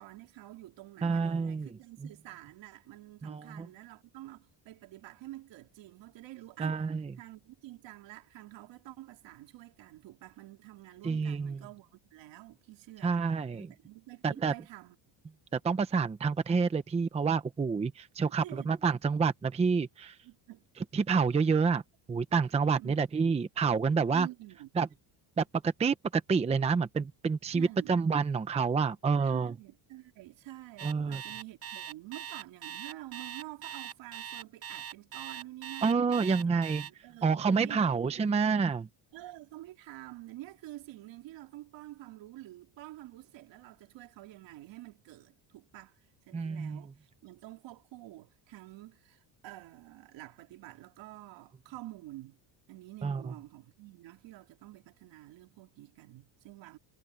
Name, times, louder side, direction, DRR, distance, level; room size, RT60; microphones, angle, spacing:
voice 1, 0.0-6.8 7.2-15.0 18.4-18.8 20.2-20.6 22.8-23.1 24.1-24.7 27.5-28.0 29.2-38.4 39.1-46.0 46.3-47.0 47.2-52.4 52.7-56.8, right 16 dB, 70° right, 3.6 m, -48 dB
voice 2, 1.0-1.7 3.2-3.7 6.6-7.1 11.0-11.6 13.0-13.7 14.2-14.5 15.5-20.2 20.9-21.8 22.1-24.3 24.8-24.9 25.4-29.5 30.8-31.2 35.8-36.8 37.2-38.9 46.3-46.8 53.0-53.3, right 5 dB, 15° right, 0.7 m, -28 dB
Alarm, 30.8-36.9, right 9 dB, 30° right, 1.1 m, -41 dB
cardioid pair, 165°, 46 cm